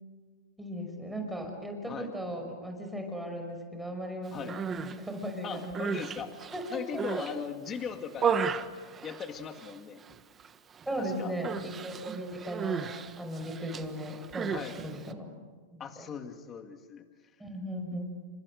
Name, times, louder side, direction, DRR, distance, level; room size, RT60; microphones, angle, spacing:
voice 1, 0.6-5.9 6.5-7.0 10.9-12.9 13.2-14.5 14.8-15.3 15.7-16.1 17.4-18.2, equal, 5° right, 3 dB, 5.6 m, -37 dB
Human voice, 4.4-5.0 5.5-7.4 7.8-9.8 10.0-10.5 10.7-11.0 11.4-15.1, right 6 dB, 25° right, 1.4 m, -34 dB
voice 2, 5.4-6.3 6.7-8.6 9.0-10.0 11.0-11.3 14.5-14.8 15.8-17.1, left 7 dB, 25° left, 6 dB, 2.2 m, -39 dB
29.5 x 26.0 x 6.6 m, 1.4 s
hypercardioid pair, 125°, 0 cm